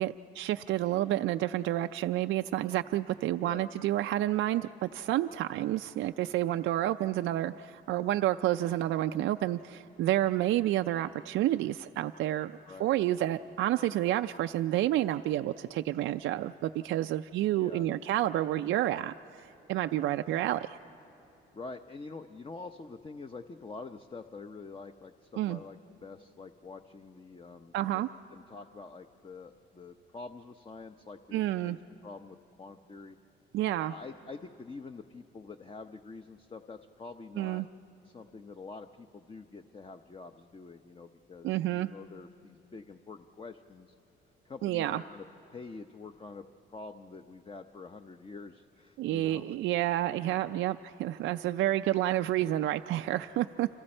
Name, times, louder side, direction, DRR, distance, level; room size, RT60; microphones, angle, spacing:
voice 1, 0.0-20.8 25.4-25.6 27.7-28.1 31.3-31.8 33.5-33.9 37.4-37.7 41.4-41.9 44.6-45.0 49.0-53.7, right 14 dB, 80° right, 8 dB, 0.4 m, -29 dB
voice 2, 21.5-28.0 28.3-31.8 32.0-33.2 33.9-37.6 38.0-43.9 44.4-45.2 45.5-49.6, left 4 dB, 25° left, 7 dB, 0.7 m, -46 dB
29.5 x 26.0 x 4.4 m, 2.9 s
cardioid pair, 90°, 20 cm